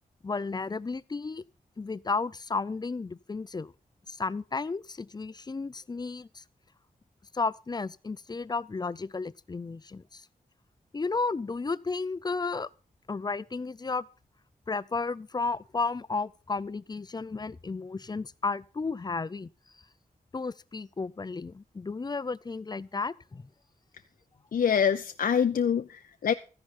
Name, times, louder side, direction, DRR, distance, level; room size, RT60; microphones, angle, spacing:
voice 1, 0.2-1.4 1.8-3.7 4.1-6.4 7.3-10.2 10.9-12.7 13.1-14.0 14.7-19.5 20.3-23.4, left 4 dB, 25° left, 0.5 m, -33 dB
voice 2, 24.5-26.3, left 7 dB, 75° left, 0.6 m, -25 dB
14.0 x 10.5 x 4.3 m
wide cardioid pair, 105°, 15 cm